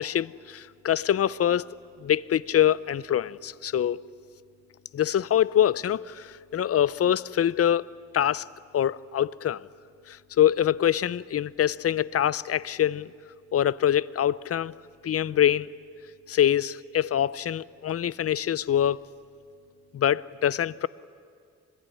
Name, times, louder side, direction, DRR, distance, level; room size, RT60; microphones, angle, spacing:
voice 1, 0.0-1.7 2.0-4.0 4.9-8.5 8.7-9.6 10.1-13.1 13.5-14.7 15.0-15.7 16.3-19.0 19.9-20.9, left 10 dB, 55° left, 0.7 m, -24 dB
25.5 x 21.0 x 9.9 m
cardioid pair, 75°, 29 cm